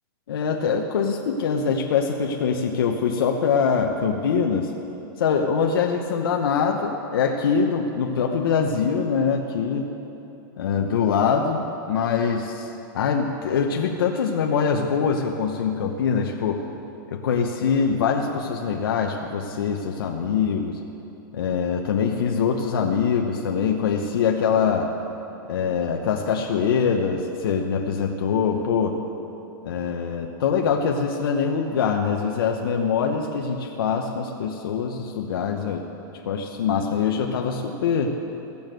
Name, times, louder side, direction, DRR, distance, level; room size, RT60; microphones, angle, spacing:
voice 1, 0.3-4.7 5.2-9.9 10.6-16.6 17.1-20.8 21.3-24.9 25.5-29.0 29.6-35.9 36.2-38.2, left 6 dB, 85° left, 2 dB, 0.9 m, -23 dB
16.0 x 7.2 x 7.7 m, 3.0 s
supercardioid pair, 155°, 12 cm